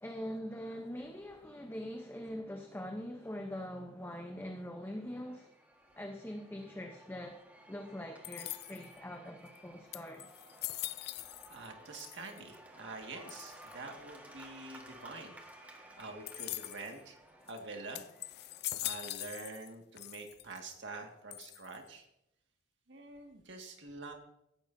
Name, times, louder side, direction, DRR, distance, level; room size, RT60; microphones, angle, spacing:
voice 1, 0.0-5.5 5.9-7.4 7.7-10.3, equal, 10° left, 3 dB, 0.7 m, -43 dB
Cheering / Applause / Crowd, 4.8-19.5, right 1 dB, 10° right, 1.5 m, -56 dB
sound 1, 8.2-9.0 9.6-9.7 9.9-11.7 11.9-12.6 13.3-13.7 16.3-16.9 17.5-17.6 17.9-19.7 20.0-20.6 21.3-21.9, left 16 dB, 55° left, 0.3 m, -42 dB
voice 2, 11.5-15.4 16.0-17.2 17.5-18.0 18.8-22.1 22.9-24.1, right 3 dB, 70° right, 3 dB, 1.9 m, -46 dB
17.5 x 10.0 x 2.7 m, 0.80 s
head